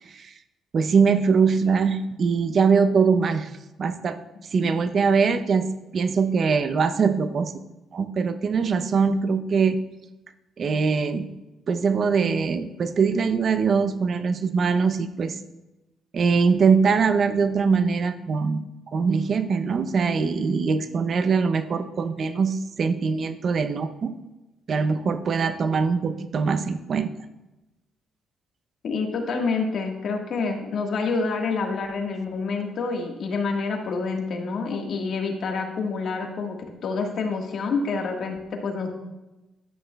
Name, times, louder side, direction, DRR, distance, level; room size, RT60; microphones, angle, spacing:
voice 1, 0.7-3.5 3.8-4.2 4.5-5.7 5.9-7.6 7.9-9.8 10.6-11.3 11.7-15.4 16.1-18.6 18.9-24.1 24.7-27.1, right 5 dB, 50° right, 11 dB, 0.6 m, -22 dB
voice 2, 28.8-38.9, left 4 dB, 60° left, 2 dB, 1.5 m, -27 dB
11.5 x 8.8 x 2.3 m, 1.0 s
cardioid pair, 90°, 0 cm